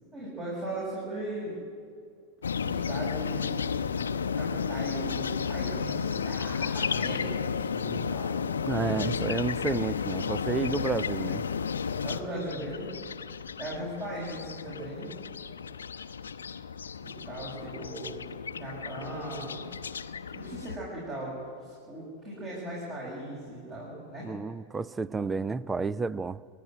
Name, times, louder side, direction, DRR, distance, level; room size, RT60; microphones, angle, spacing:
voice 1, 0.1-1.5 2.5-3.8 4.0-9.2 11.9-12.9 13.6-15.1 17.0-18.2 18.5-19.6 20.3-21.3 21.6-24.3 25.2-25.3, right 1 dB, 30° right, -5 dB, 6.5 m, -38 dB
sound 1, 2.4-20.8, left 6 dB, 70° left, 0.7 m, -33 dB
voice 2, 8.7-11.4 24.2-26.4, right 4 dB, 15° right, 19 dB, 0.5 m, -31 dB
28.5 x 10.0 x 9.1 m, 2.2 s
figure-of-eight pair, 90°, 0 cm